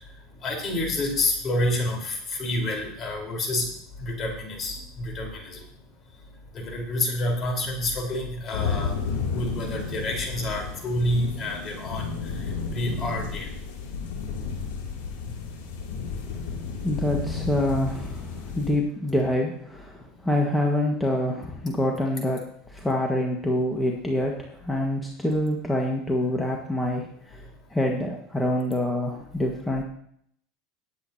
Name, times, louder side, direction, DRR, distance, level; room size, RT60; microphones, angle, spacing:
voice 1, 0.4-3.7 4.0-5.6 6.5-8.9 9.3-12.0 12.7-13.5, left 1 dB, 35° left, 1 dB, 4.2 m, -28 dB
sound 1, 8.5-18.7, left 5 dB, 85° left, 2.8 m, -32 dB
voice 2, 16.8-27.4 27.7-29.8, left 1 dB, 5° left, -1 dB, 1.6 m, -26 dB
19.5 x 8.4 x 2.9 m, 0.67 s
supercardioid pair, 105°, 0 cm